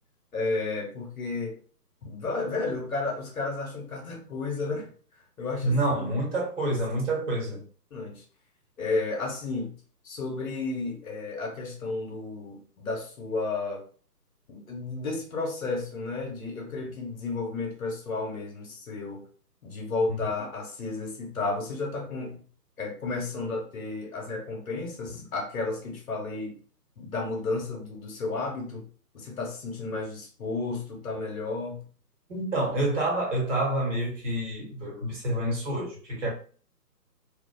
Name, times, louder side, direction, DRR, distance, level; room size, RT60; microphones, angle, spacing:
voice 1, 0.3-1.6 2.0-4.9 5.4-6.0 7.9-8.2 8.8-9.7 10.0-13.8 14.5-19.2 19.6-22.4 22.8-26.6 27.0-28.8 29.1-31.8, left 3 dB, 55° left, 0.9 m, -32 dB
voice 2, 5.6-7.6 20.1-20.3 32.3-36.3, right 1 dB, 50° right, 1.2 m, -28 dB
2.4 x 2.2 x 2.2 m
hypercardioid pair, 155°, 49 cm